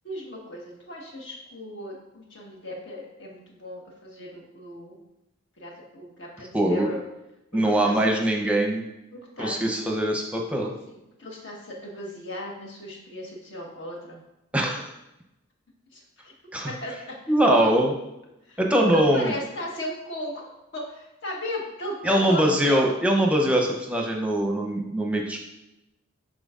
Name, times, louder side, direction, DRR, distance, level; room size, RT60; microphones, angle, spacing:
voice 1, 0.0-5.0 5.6-7.0 7.5-8.2 9.1-9.9 10.9-14.2 15.9-16.3 16.6-17.2 17.6-17.7 18.5-23.0, left 1 dB, 60° left, -2 dB, 1.4 m, -36 dB
voice 2, 6.5-6.9 7.5-8.8 9.4-10.7 14.5-14.8 16.5-16.7 17.3-17.9 18.6-19.3 22.0-25.4, right 1 dB, 5° right, 0 dB, 0.7 m, -22 dB
10.5 x 3.9 x 2.5 m, 0.91 s
head